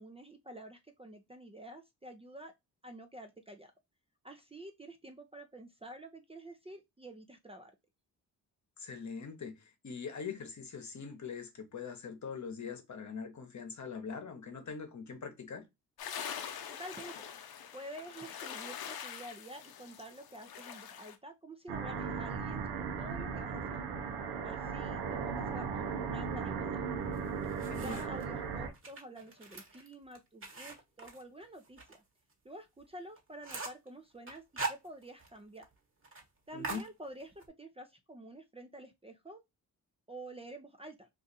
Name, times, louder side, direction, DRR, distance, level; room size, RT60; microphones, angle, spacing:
voice 1, 0.0-2.5 2.8-3.7 4.2-7.7 16.7-17.1 17.7-23.9 24.4-26.8 27.8-32.0 32.4-35.7 36.5-39.4 40.1-41.1, right 1 dB, 15° right, 0.5 m, -49 dB
voice 2, 8.8-15.6 27.7-28.1 36.5-36.8, left 6 dB, 50° left, 1.0 m, -42 dB
sound 1, 16.0-21.2, left 8 dB, 75° left, 0.6 m, -44 dB
sound 2, 21.7-28.7, right 6 dB, 90° right, 0.7 m, -37 dB
sound 3, 27.1-28.3 28.7-32.0 32.3-32.4 32.8-32.9 33.2-33.9 34.3-35.4 35.6-35.7 36.0-36.2 36.6-37.5, right 3 dB, 35° right, 1.3 m, -42 dB
2.6 x 2.4 x 3.9 m
cardioid pair, 60°, 37 cm